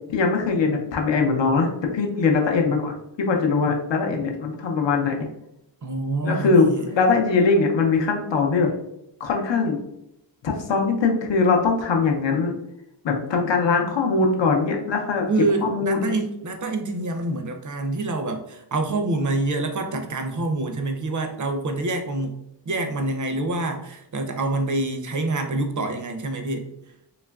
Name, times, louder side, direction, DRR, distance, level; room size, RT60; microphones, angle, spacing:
voice 1, 0.1-5.3 6.2-8.7 9.2-9.8 10.4-12.6 13.0-15.3 15.6-16.1, left 4 dB, 75° left, 2 dB, 0.6 m, -21 dB
voice 2, 5.8-6.8 15.3-22.4 22.7-26.7, right 2 dB, 45° right, 5 dB, 0.4 m, -26 dB
3.0 x 2.4 x 2.2 m, 0.82 s
wide cardioid pair, 80°, 45 cm